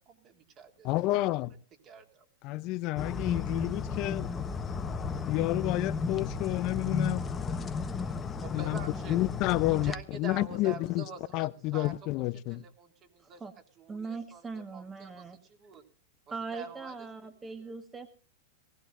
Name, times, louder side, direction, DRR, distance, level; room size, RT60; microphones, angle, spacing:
voice 1, 0.0-0.9 1.3-1.6 1.8-2.3 8.4-9.2 9.7-13.4 13.8-15.8 16.5-17.3 17.6-17.7, right 6 dB, 35° right, 3.7 m, -47 dB
voice 2, 0.8-1.5 2.4-4.3 5.3-7.2 8.5-8.8 9.1-9.9 10.2-11.0 11.3-12.6, left 18 dB, 45° left, 0.6 m, -30 dB
sound 1, 3.0-9.9, left 5 dB, 20° left, 1.1 m, -34 dB
voice 3, 13.2-13.5 13.9-15.4 16.3-18.1, right 4 dB, 15° right, 1.5 m, -40 dB
20.0 x 17.5 x 2.6 m
hypercardioid pair, 125°, 0 cm